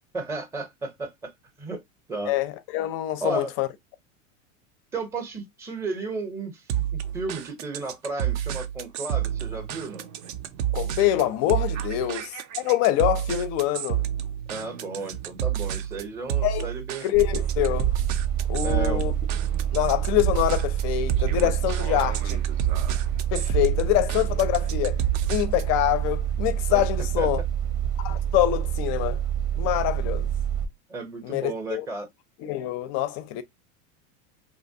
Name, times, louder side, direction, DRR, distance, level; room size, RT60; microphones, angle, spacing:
voice 1, 0.1-1.3 1.6-1.8 2.1-2.3 3.2-3.5 4.9-10.1 14.5-17.0 18.6-19.0 26.7-26.8 27.2-27.3 30.9-32.1, right 3 dB, 5° right, 0.6 m, -33 dB
voice 2, 2.3-3.7 10.7-14.0 16.4-16.7 17.0-17.9 18.5-19.1 19.7-22.4 23.3-25.0 25.3-27.4 28.0-29.2 29.6-30.2 31.2-31.9 32.4-33.4, left 14 dB, 40° left, 0.4 m, -25 dB
sound 1, 6.7-25.8, right 11 dB, 55° right, 0.5 m, -30 dB
sound 2, 17.1-30.7, right 10 dB, 90° right, 1.0 m, -27 dB
2.9 x 2.2 x 2.6 m
supercardioid pair, 120°, 42 cm